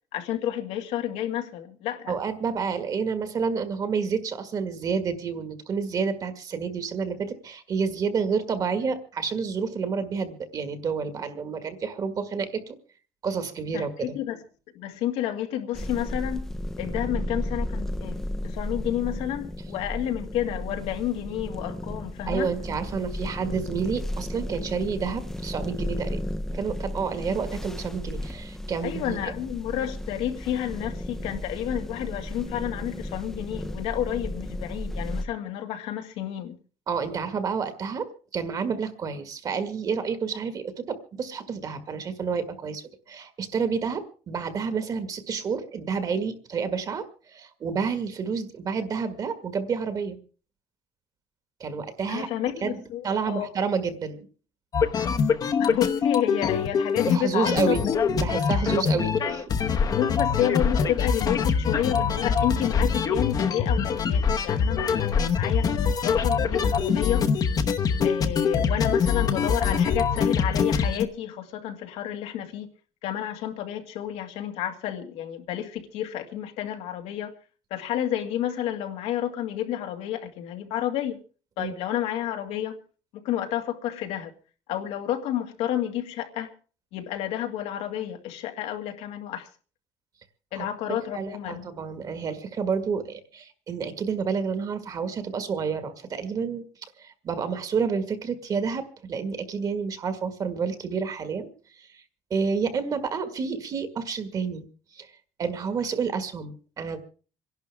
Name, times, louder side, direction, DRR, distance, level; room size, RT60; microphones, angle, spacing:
voice 1, 0.1-2.2 13.7-14.4 14.8-16.5 16.8-22.5 28.8-36.6 52.1-53.5 55.6-57.8 59.8-65.7 66.0-67.3 68.0-72.7 73.0-77.3 77.7-81.2 81.6-82.8 83.1-84.3 84.7-86.5 86.9-89.5 90.5-91.7, left 11 dB, 90° left, 2.1 m, -30 dB
voice 2, 2.1-12.8 13.2-14.2 22.3-26.2 26.5-29.2 36.9-50.2 51.6-52.3 52.6-54.3 57.1-59.4 81.6-81.7 90.5-90.7 91.1-96.6 97.0-101.5 101.8-102.0 102.3-104.7 104.9-105.1 105.4-107.0, right 5 dB, 35° right, 1.7 m, -29 dB
sound 1, 15.7-35.3, left 1 dB, 5° left, 0.7 m, -34 dB
sound 2, 54.7-57.2 57.5-71.1, left 6 dB, 35° left, 1.0 m, -24 dB
27.0 x 11.5 x 3.5 m
cardioid pair, 160°, 11 cm